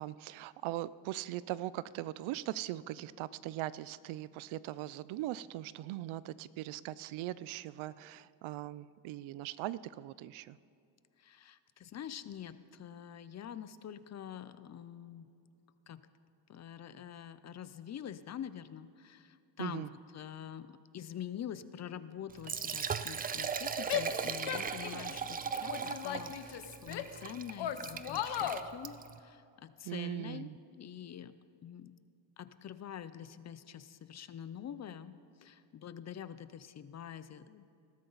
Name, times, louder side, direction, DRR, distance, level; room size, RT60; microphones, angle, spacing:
voice 1, 0.0-10.6 19.6-19.9 29.8-30.6, right 14 dB, 85° right, 18 dB, 0.6 m, -40 dB
voice 2, 11.2-15.3 15.9-16.0 16.5-19.9 20.1-31.3 31.6-31.9 32.4-37.6, left 9 dB, 35° left, 14 dB, 0.5 m, -46 dB
Liquid, 22.3-29.2, right 6 dB, 20° right, 0.3 m, -38 dB
Female speech woman speaking / Yell, 23.9-25.2 25.7-27.2 27.6-28.6, left 10 dB, 60° left, 1.0 m, -37 dB
20.0 x 13.0 x 4.0 m, 2.6 s
cardioid pair, 135°, 47 cm